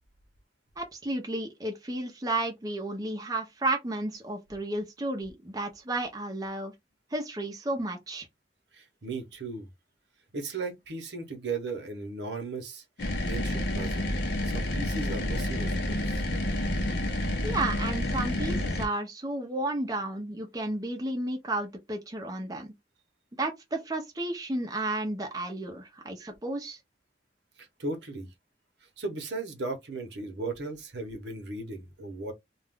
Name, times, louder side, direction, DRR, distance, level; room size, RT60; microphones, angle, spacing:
voice 1, 0.8-6.7 7.1-8.3 17.4-22.7 23.4-26.8, right 2 dB, 20° right, 0.6 m, -32 dB
voice 2, 8.7-9.7 10.3-14.1 14.4-16.2 27.6-28.3 29.0-32.3, right 3 dB, 80° right, 0.9 m, -37 dB
sound 1, 13.0-18.9, left 1 dB, 70° left, 0.6 m, -29 dB
2.4 x 2.2 x 3.5 m
head